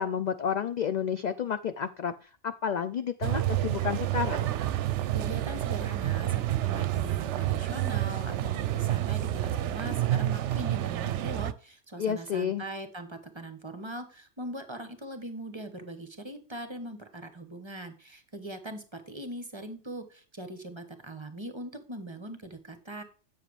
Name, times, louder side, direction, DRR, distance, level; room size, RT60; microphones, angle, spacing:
voice 1, 0.0-4.5 12.0-12.6, left 7 dB, 55° left, 10 dB, 0.5 m, -31 dB
sound 1, 3.2-11.5, right 13 dB, 75° right, 0.9 m, -29 dB
voice 2, 5.1-23.0, right 1 dB, 25° right, 9 dB, 1.1 m, -41 dB
7.9 x 7.5 x 3.2 m, 0.38 s
omnidirectional pair, 1.2 m